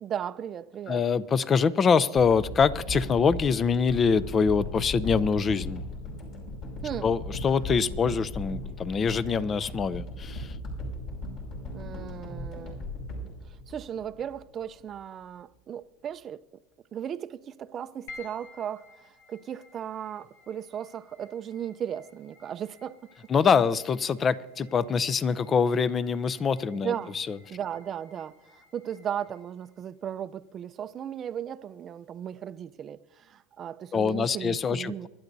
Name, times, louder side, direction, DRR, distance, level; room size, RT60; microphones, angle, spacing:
voice 1, 0.0-1.0 6.8-7.1 11.7-12.8 13.7-16.4 16.9-23.1 26.7-27.2 27.5-28.4 28.7-35.1, right 9 dB, 35° right, 0.5 m, -36 dB
voice 2, 0.9-5.8 7.0-10.5 23.3-27.4 33.9-35.1, left 6 dB, 30° left, 0.5 m, -24 dB
sound 1, 2.2-14.4 14.9-15.0, equal, 55° left, 5.7 m, -37 dB
sound 2, 18.1-32.5, left 4 dB, 75° left, 1.7 m, -55 dB
25.0 x 11.5 x 2.7 m
supercardioid pair, 115°, 0 cm